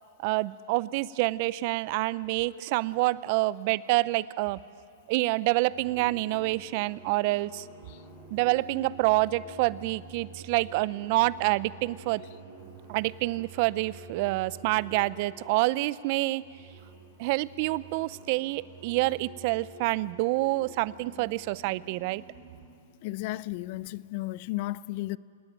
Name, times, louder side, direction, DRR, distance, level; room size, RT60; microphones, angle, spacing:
voice 1, 0.2-4.6 5.1-7.7 8.3-12.2 12.9-16.4 17.2-22.2, right 19 dB, 50° right, 0.6 m, -27 dB
sound 1, 4.9-5.3 5.7-15.7 16.2-22.8, right 4 dB, 30° right, 7.5 m, -49 dB
voice 2, 23.0-25.2, left 18 dB, 50° left, 0.5 m, -34 dB
26.0 x 18.5 x 9.0 m
hypercardioid pair, 120°, 0 cm